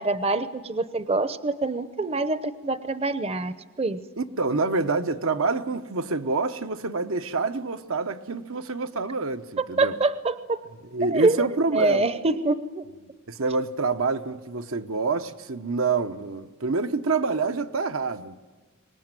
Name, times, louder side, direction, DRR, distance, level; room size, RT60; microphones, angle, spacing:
voice 1, 0.0-4.0 9.6-10.6 11.1-12.8, right 3 dB, 30° right, 0.8 m, -25 dB
voice 2, 4.2-9.9 10.9-12.1 13.3-18.4, right 4 dB, 75° right, 1.0 m, -27 dB
24.5 x 20.0 x 9.1 m
head